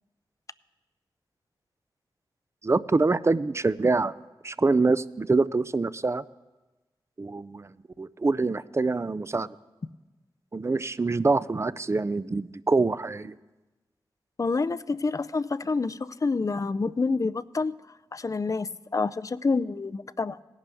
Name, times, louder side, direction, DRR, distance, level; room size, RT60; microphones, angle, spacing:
voice 1, 2.6-4.1 4.4-6.2 7.2-7.7 8.0-9.5 10.5-13.3, right 3 dB, 30° right, 17 dB, 0.4 m, -25 dB
voice 2, 14.4-17.8 18.1-20.4, left 4 dB, 35° left, 17 dB, 0.4 m, -28 dB
17.5 x 11.0 x 3.5 m, 1.1 s
cardioid pair, 45°, 10 cm